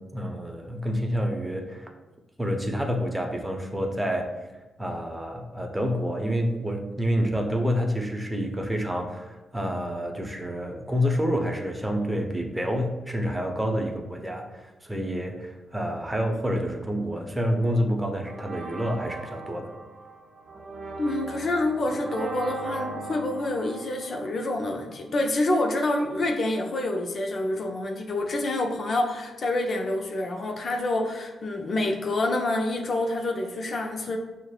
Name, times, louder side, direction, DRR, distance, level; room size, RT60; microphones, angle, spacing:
voice 1, 0.0-1.9 2.4-4.3 4.8-19.7, equal, 15° right, 2 dB, 0.7 m, -28 dB
sound 1, 18.2-25.0, right 3 dB, 50° right, 0.6 m, -38 dB
voice 2, 21.0-34.2, left 2 dB, 55° left, 3 dB, 0.5 m, -27 dB
6.2 x 2.1 x 2.2 m, 1.1 s
hypercardioid pair, 40°, 0 cm